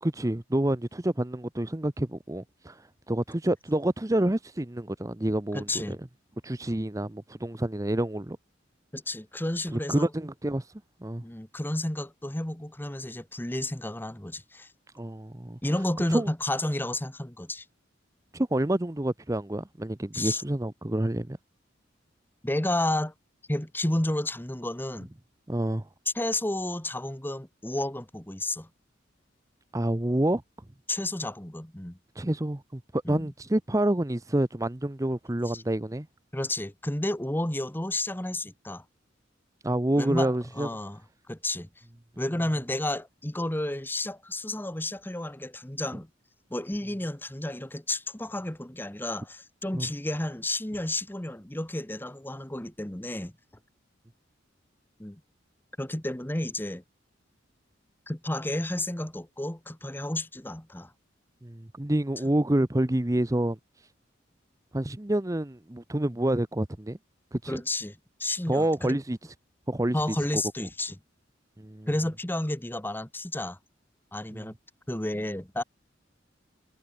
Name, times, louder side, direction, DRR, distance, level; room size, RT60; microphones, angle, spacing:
voice 1, 0.0-2.8 3.1-6.0 6.4-8.4 9.7-10.7 11.0-11.2 14.9-15.6 16.1-16.3 18.3-21.4 25.5-25.9 29.7-30.4 32.2-36.1 39.6-40.7 49.7-49.9 61.4-63.6 64.7-67.0 67.3-67.6 68.5-69.2 69.7-70.4 71.6-71.9 74.3-74.5, right 1 dB, 15° right, 0.8 m, -28 dB
voice 2, 5.5-6.0 8.9-10.1 11.2-14.7 15.6-17.6 20.1-20.4 22.4-23.1 23.5-25.1 26.1-28.7 30.9-32.0 33.0-33.3 35.5-35.6 36.3-38.8 40.0-41.0 41.3-41.7 42.2-46.1 46.5-53.3 55.0-55.2 55.8-56.8 58.1-60.9 67.5-69.0 69.9-71.0 71.9-73.6 74.1-74.5 74.9-75.6, left 1 dB, 10° left, 1.1 m, -31 dB
head